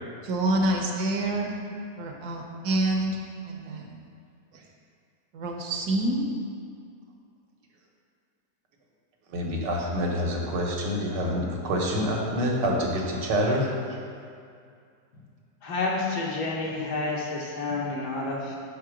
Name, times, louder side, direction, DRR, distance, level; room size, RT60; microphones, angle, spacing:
voice 1, 0.2-4.1 5.3-6.3, right 1 dB, 70° right, 1 dB, 1.2 m, -28 dB
voice 2, 9.3-14.0, equal, 90° right, -1 dB, 1.6 m, -27 dB
voice 3, 15.6-18.5, left 3 dB, 70° left, -3 dB, 1.5 m, -29 dB
5.8 x 4.7 x 4.9 m, 2.3 s
omnidirectional pair, 1.8 m